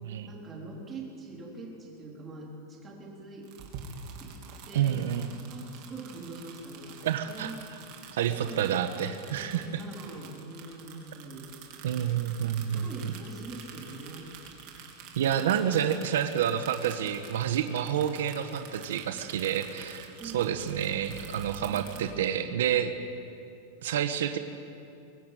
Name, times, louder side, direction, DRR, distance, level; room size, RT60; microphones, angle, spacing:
voice 1, 0.2-3.5 4.2-4.4 4.7-5.0 5.5-7.6 8.4-8.7 9.3-11.5 12.7-14.3 20.2-20.6 21.2-22.2, right 2 dB, 15° right, -2 dB, 3.9 m, -44 dB
sound 1, 3.4-22.0, right 6 dB, 45° right, 3.2 m, -48 dB
voice 2, 4.7-5.3 7.0-7.5 8.1-9.8 11.8-13.1 15.2-20.1 20.3-22.9 23.8-24.4, right 9 dB, 85° right, 7 dB, 1.3 m, -29 dB
23.0 x 18.0 x 9.2 m, 2.6 s
supercardioid pair, 165°, 0 cm